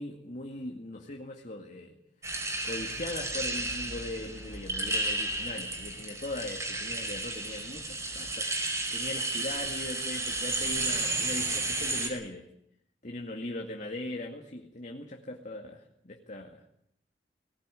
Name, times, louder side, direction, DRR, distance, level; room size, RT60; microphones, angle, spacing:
voice 1, 0.0-2.0 2.6-8.5 8.9-12.5 13.0-16.7, left 1 dB, 45° left, 2 dB, 2.2 m, -39 dB
sound 1, 2.2-12.1, right 2 dB, 15° right, 5.1 m, -32 dB
19.5 x 19.5 x 9.1 m, 0.73 s
head